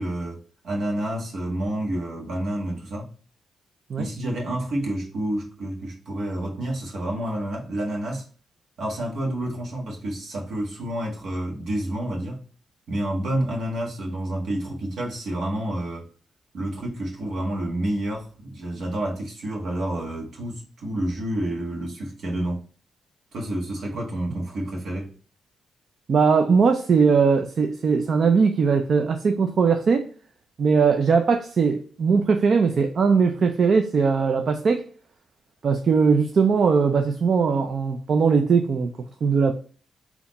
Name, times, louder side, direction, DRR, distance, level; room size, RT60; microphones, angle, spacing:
voice 1, 0.0-3.1 4.0-8.2 8.8-12.4 12.9-16.1 16.5-22.6 23.3-25.1, right 1 dB, 75° right, 1.5 m, -29 dB
voice 2, 26.1-30.1 30.6-34.9 35.6-39.5, right 5 dB, 60° right, 0.4 m, -20 dB
4.1 x 2.9 x 4.1 m
cardioid pair, 80°, 0 cm